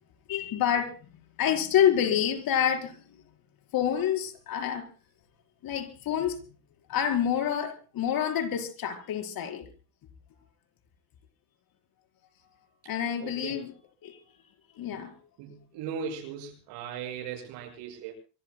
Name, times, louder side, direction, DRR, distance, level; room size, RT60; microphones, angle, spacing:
voice 1, 0.3-1.0 1.4-3.0 3.7-4.9 5.6-6.4 6.9-9.7 12.8-13.7 14.0-14.2 14.7-15.1, left 9 dB, 60° left, 5 dB, 4.9 m, -27 dB
voice 2, 13.2-13.7 14.9-15.0 15.4-18.1, right 7 dB, 90° right, 1 dB, 7.0 m, -38 dB
26.0 x 23.5 x 2.3 m, 0.36 s
cardioid pair, 130°, 39 cm